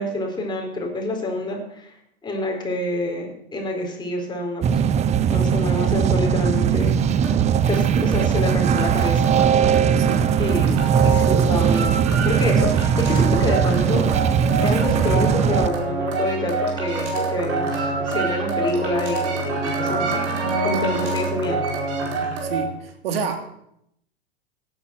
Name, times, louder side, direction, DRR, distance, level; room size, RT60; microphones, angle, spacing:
voice 1, 0.0-1.9 2.2-4.8 5.3-7.3 7.7-9.3 10.4-10.7 11.0-12.0 12.2-14.1 14.6-20.2 20.6-21.6, left 1 dB, 15° left, 0 dB, 4.2 m, -27 dB
sound 1, 4.6-15.7, right 8 dB, 20° right, 0.6 m, -19 dB
sound 2, 5.3-22.7, right 3 dB, 45° right, 4.7 m, -27 dB
voice 2, 10.0-10.3 22.4-23.4, right 5 dB, 65° right, 6 dB, 2.9 m, -28 dB
16.0 x 9.4 x 6.0 m, 0.74 s
hypercardioid pair, 105°, 32 cm